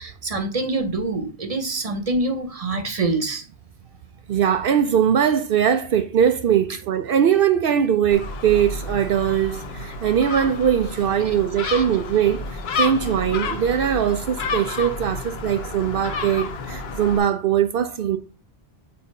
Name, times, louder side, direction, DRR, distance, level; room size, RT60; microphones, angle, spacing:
voice 1, 0.0-3.4 11.2-11.3 11.6-11.8 13.0-13.1, right 2 dB, 35° right, 0.9 m, -26 dB
voice 2, 4.3-18.2, right 9 dB, 65° right, 0.7 m, -21 dB
Gull seagull, 8.1-17.2, left 3 dB, 75° left, 1.0 m, -30 dB
6.8 x 2.8 x 5.3 m
omnidirectional pair, 1.1 m